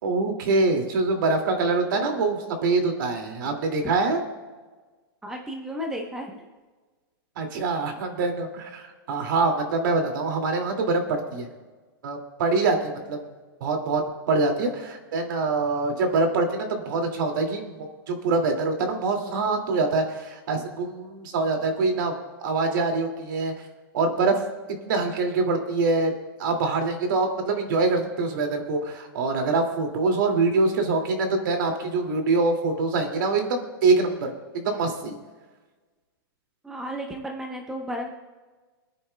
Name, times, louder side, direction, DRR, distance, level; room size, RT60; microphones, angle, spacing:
voice 1, 0.0-4.2 7.4-11.5 12.0-13.2 13.6-14.0 14.3-23.5 23.9-24.4 24.8-26.1 26.4-35.1, right 3 dB, 55° right, 3 dB, 2.4 m, -24 dB
voice 2, 5.2-6.4 36.6-38.1, equal, 5° right, 1 dB, 0.9 m, -33 dB
26.0 x 9.8 x 2.3 m, 1.3 s
hypercardioid pair, 170°, 13 cm